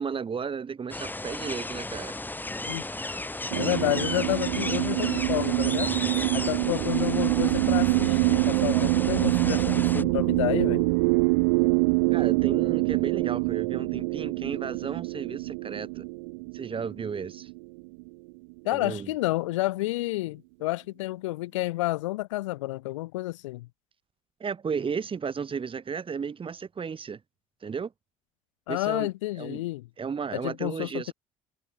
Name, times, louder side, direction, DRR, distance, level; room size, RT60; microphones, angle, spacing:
voice 1, 0.0-2.2 12.1-16.0 16.5-17.5 18.7-19.1 24.4-27.2 27.6-27.9 28.7-29.1 29.4-29.7 30.0-31.1, right 6 dB, 30° right, 4.8 m, -34 dB
sound 1, 0.9-10.0, left 2 dB, 10° left, 5.3 m, -34 dB
voice 2, 3.5-5.9 6.3-10.9 18.6-23.7 28.7-29.9 30.3-31.1, left 18 dB, 70° left, 1.7 m, -30 dB
sound 2, 3.5-18.1, right 29 dB, 65° right, 1.4 m, -25 dB
figure-of-eight pair, 55°, 17 cm